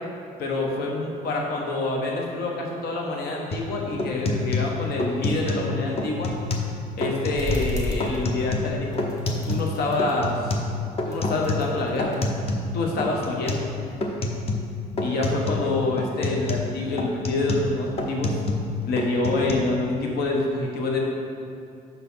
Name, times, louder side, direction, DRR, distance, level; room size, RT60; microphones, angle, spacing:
voice 1, 0.4-6.3 7.0-9.0 9.4-10.6 11.1-12.2 12.7-13.7 15.0-18.3 18.9-21.0, left 2 dB, 70° left, -1 dB, 1.2 m, -26 dB
sound 1, 3.5-3.7 4.0-5.7 6.0-6.7 7.0-7.7 8.0-9.7 10.0-12.7 13.0-13.7 14.0-14.7 15.0-15.7 16.0-18.7 19.0-19.5, left 2 dB, 35° left, 0.8 m, -28 dB
sound 2, 7.3-8.7 8.9-10.6 10.9-12.2 12.8-13.9, left 2 dB, 20° left, 1.3 m, -34 dB
5.9 x 4.1 x 5.6 m, 2.5 s
cardioid pair, 110°, 17 cm